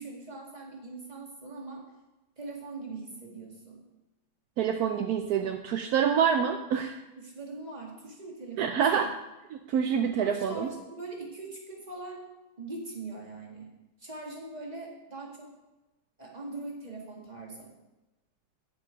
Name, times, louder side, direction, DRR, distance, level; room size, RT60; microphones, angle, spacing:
voice 1, 0.0-1.8 2.4-3.8 7.2-9.1 10.2-12.2 12.6-13.7 14.0-15.5 16.2-17.7, right 3 dB, 20° right, -2 dB, 2.0 m, -41 dB
voice 2, 4.6-7.0 8.6-9.1 9.5-10.7, right 7 dB, 75° right, 6 dB, 0.9 m, -26 dB
9.6 x 7.1 x 5.1 m, 1.0 s
omnidirectional pair, 2.1 m